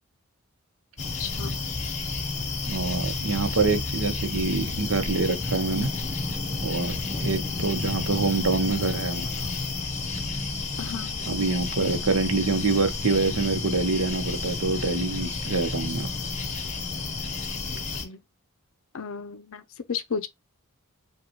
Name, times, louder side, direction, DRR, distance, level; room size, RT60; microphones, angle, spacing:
sound 1, 1.0-18.1, left 3 dB, 30° left, 0.7 m, -31 dB
voice 1, 1.2-1.6 10.8-11.2 17.7-18.2 18.9-19.6 19.9-20.3, left 6 dB, 70° left, 0.5 m, -34 dB
voice 2, 2.6-5.9 6.6-9.4 11.3-16.1, right 3 dB, 70° right, 0.7 m, -26 dB
5.2 x 2.3 x 2.9 m
head